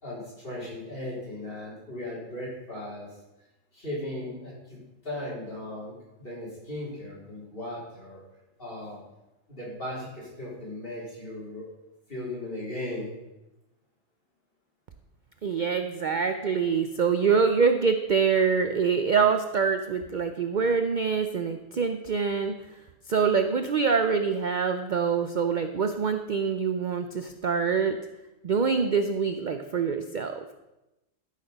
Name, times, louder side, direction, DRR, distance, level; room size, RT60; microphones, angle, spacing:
voice 1, 0.0-3.1 3.7-8.2 8.6-9.0 9.5-11.7 12.1-13.1, left 1 dB, 45° left, -6 dB, 4.2 m, -37 dB
voice 2, 15.4-22.5 23.1-28.0 28.4-30.5, right 5 dB, 50° right, 7 dB, 0.6 m, -25 dB
12.5 x 6.6 x 5.4 m, 0.97 s
omnidirectional pair, 1.4 m